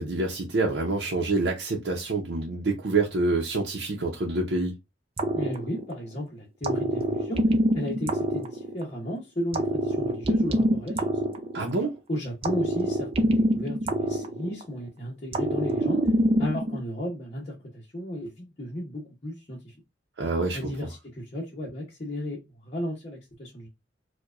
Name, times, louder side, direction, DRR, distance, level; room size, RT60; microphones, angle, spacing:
voice 1, 0.0-4.7 11.5-11.9 20.2-20.7, right 3 dB, 75° right, 0.7 m, -27 dB
sound 1, 5.2-6.2 6.6-9.1 9.5-12.0 12.4-14.9 15.3-16.8, right 1 dB, 35° right, 0.5 m, -25 dB
voice 2, 5.3-7.4 7.7-11.1 12.1-16.0 16.4-19.7 20.5-23.7, equal, 40° left, 0.9 m, -34 dB
4.5 x 2.2 x 2.4 m
head